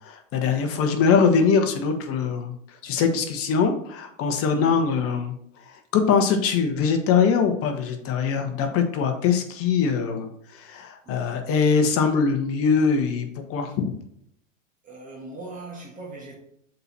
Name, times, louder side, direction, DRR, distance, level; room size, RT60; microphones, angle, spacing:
voice 1, 0.0-2.5 2.8-5.3 5.9-13.9, left 6 dB, 35° left, 1.2 m, -22 dB
voice 2, 14.8-16.4, right 3 dB, 20° right, 1.8 m, -39 dB
6.7 x 4.4 x 4.1 m
hypercardioid pair, 110°, 39 cm